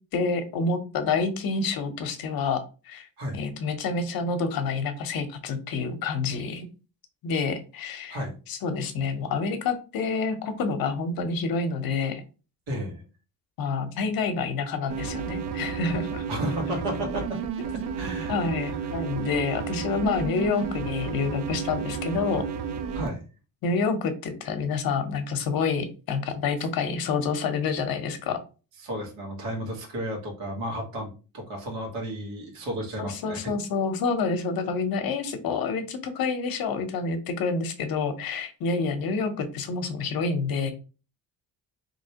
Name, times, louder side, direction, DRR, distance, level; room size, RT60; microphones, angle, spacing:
voice 1, 0.1-3.1 3.3-6.7 7.2-8.2 8.5-12.2 13.6-16.2 18.3-22.4 23.6-28.4 33.0-40.7, left 4 dB, 55° left, 8 dB, 0.7 m, -28 dB
voice 2, 12.7-13.0 16.3-17.2 18.0-18.3 22.9-23.2 28.8-33.4, equal, 90° right, 1 dB, 1.4 m, -32 dB
sound 1, 14.9-23.1, right 6 dB, 75° right, 0.6 m, -32 dB
3.3 x 2.8 x 2.8 m, 0.34 s
cardioid pair, 105°, 41 cm